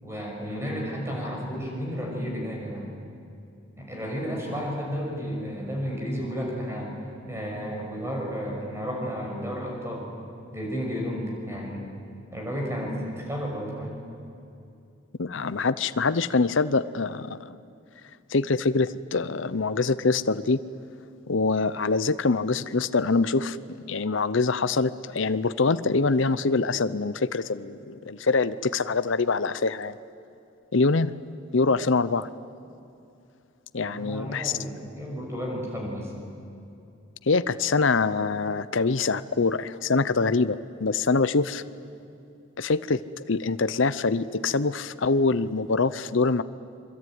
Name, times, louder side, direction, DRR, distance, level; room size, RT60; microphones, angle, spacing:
voice 1, 0.0-2.9 3.8-10.1 10.5-11.8 12.3-14.0 33.8-36.1, equal, 15° right, -1 dB, 6.5 m, -32 dB
voice 2, 15.2-17.6 18.3-20.6 21.3-23.6 23.9-29.9 30.7-31.1 31.5-32.3 33.7-34.5 37.3-41.6 42.6-46.4, left 4 dB, 65° left, 14 dB, 0.7 m, -24 dB
26.5 x 23.0 x 9.5 m, 2.6 s
head